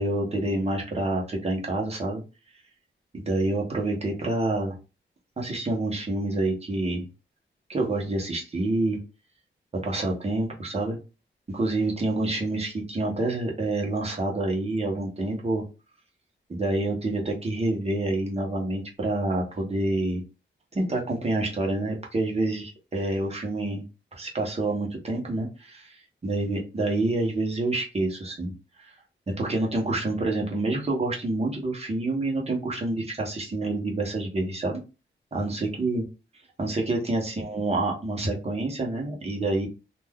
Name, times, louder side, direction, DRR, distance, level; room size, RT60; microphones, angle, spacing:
voice 1, 0.0-2.2 3.1-4.7 5.4-7.1 7.7-9.0 9.8-11.0 11.5-15.6 16.5-20.2 20.7-23.8 24.1-28.5 28.8-28.9 29.3-34.8 35.3-36.0 36.6-39.7, right 2 dB, 30° right, -1 dB, 0.9 m, -27 dB
2.5 x 2.3 x 3.4 m, 0.31 s
wide cardioid pair, 140°, 20 cm